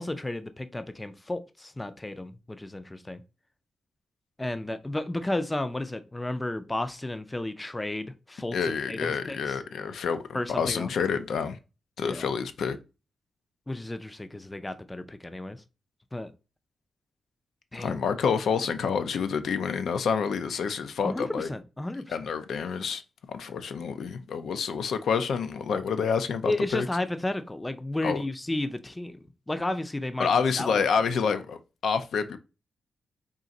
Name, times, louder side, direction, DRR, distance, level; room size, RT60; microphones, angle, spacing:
voice 1, 0.0-3.2 4.4-8.6 8.9-9.6 10.3-10.9 12.0-12.3 13.7-15.6 16.1-16.3 17.7-18.0 21.0-22.1 26.5-29.2 29.5-30.3 30.6-30.8, left 1 dB, 15° left, 0.3 m, -32 dB
voice 2, 8.5-11.6 12.0-12.8 17.7-21.5 22.1-23.0 23.3-26.9 28.0-28.2 30.2-32.4, left 6 dB, 75° left, 0.4 m, -28 dB
3.7 x 2.5 x 4.0 m
wide cardioid pair, 130°, 0 cm